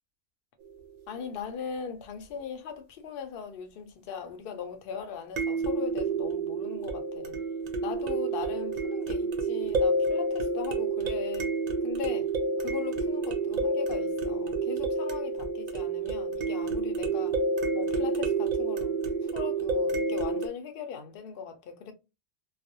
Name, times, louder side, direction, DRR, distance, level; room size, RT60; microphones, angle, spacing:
sound 1, 0.6-0.7 5.4-20.5, right 3 dB, 90° right, 0.3 m, -29 dB
voice 1, 1.1-7.3 7.8-11.5 11.8-12.3 12.6-17.4 17.7-18.9 19.2-21.9, left 7 dB, 60° left, 0.7 m, -39 dB
2.4 x 2.0 x 2.6 m
omnidirectional pair, 1.3 m